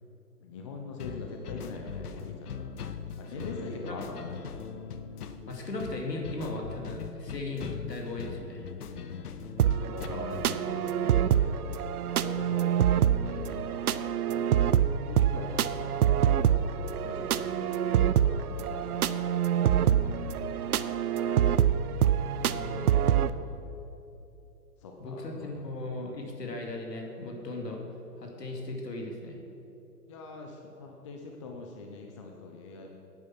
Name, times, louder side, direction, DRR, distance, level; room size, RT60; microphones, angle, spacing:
voice 1, 0.4-2.7 3.2-4.3 8.9-9.5 9.8-11.9 12.2-12.7 13.2-13.9 14.3-20.9 21.7-22.0 22.4-23.8 24.8-25.7 30.1-32.9, left 3 dB, 20° left, 2 dB, 0.5 m, -44 dB
sound 1, 1.0-10.6, left 6 dB, 65° left, 0.9 m, -41 dB
voice 2, 3.3-4.2 5.5-8.7 22.5-22.9 25.0-27.8 28.2-29.4, left 2 dB, 80° left, 1 dB, 2.5 m, -37 dB
sound 2, 9.6-23.3, right 9 dB, 65° right, 0.6 m, -26 dB
11.0 x 9.0 x 5.9 m, 2.9 s
hypercardioid pair, 135°, 48 cm